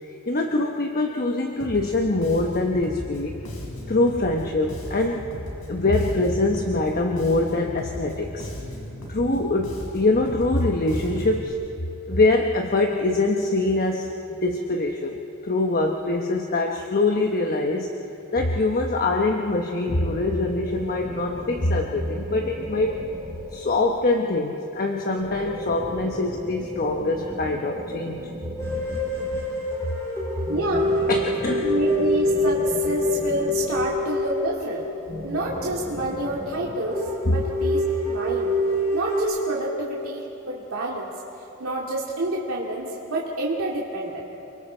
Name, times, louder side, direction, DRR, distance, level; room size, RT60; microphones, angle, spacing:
voice 1, 0.3-3.4 3.9-5.2 5.7-8.5 9.1-11.6 12.1-17.9 18.3-23.0 23.5-28.3 31.1-31.7 37.3-37.4, left 2 dB, 45° left, 2 dB, 1.1 m, -24 dB
Bass guitar, 1.6-11.5, left 1 dB, 70° left, 5.5 m, -37 dB
sound 1, 19.9-24.1 25.2-29.8 30.4-34.4 35.0-36.7, equal, 25° right, 2.6 m, -37 dB
sound 2, 28.6-35.9 36.2-36.3 36.6-36.7 36.9-39.2, left 1 dB, 15° left, 7.0 m, -26 dB
voice 2, 30.5-30.9 31.6-34.8 35.2-38.6 38.9-41.1 41.6-44.2, right 1 dB, 80° right, -4 dB, 2.3 m, -28 dB
29.0 x 23.5 x 4.5 m, 2.9 s
head